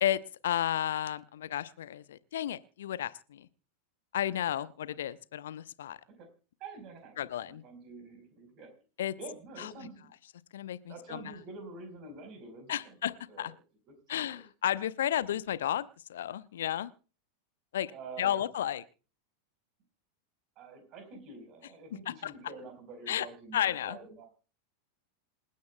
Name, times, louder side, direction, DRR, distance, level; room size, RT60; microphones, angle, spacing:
voice 1, 0.0-3.5 4.1-6.0 7.2-7.6 9.0-9.1 9.6-9.9 10.5-11.2 12.7-13.5 14.1-16.9 17.7-17.9 18.2-18.8 22.1-22.3 23.1-23.3 23.5-24.0, left 11 dB, 60° left, 16 dB, 0.6 m, -33 dB
voice 2, 6.6-7.2 7.5-8.7 9.2-10.1 10.9-13.0 13.3-13.5 13.9-14.4 17.9-18.4 20.6-24.3, right 3 dB, 35° right, 7 dB, 4.2 m, -47 dB
27.5 x 9.4 x 2.2 m, 0.35 s
figure-of-eight pair, 90°, 0 cm